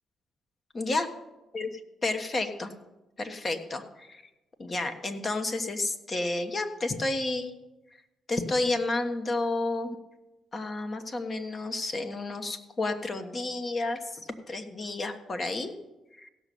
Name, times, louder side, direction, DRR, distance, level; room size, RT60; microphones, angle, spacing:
voice 1, 0.7-1.1 1.5-1.7 2.0-2.7 3.2-4.2 4.6-7.5 8.3-10.0 10.5-15.7 16.2-16.3, left 2 dB, 35° left, 7 dB, 1.3 m, -31 dB
16.0 x 6.3 x 6.9 m, 1.0 s
cardioid pair, 90°, 0 cm